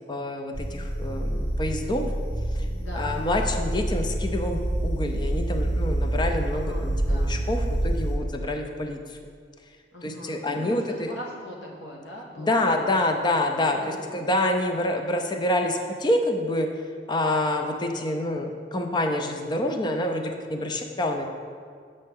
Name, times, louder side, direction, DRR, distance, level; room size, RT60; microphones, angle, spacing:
voice 1, 0.1-2.1 2.5-2.7 2.9-9.2 10.0-11.1 12.4-16.7 17.1-21.2, left 1 dB, 25° left, 5 dB, 0.4 m, -27 dB
sound 1, 0.5-8.2, right 1 dB, 55° left, 1.3 m, -27 dB
voice 2, 2.7-3.2 6.0-6.1 6.5-7.4 9.9-13.1 13.6-14.2, left 1 dB, 75° left, -2 dB, 1.3 m, -41 dB
7.6 x 5.3 x 3.6 m, 2.1 s
head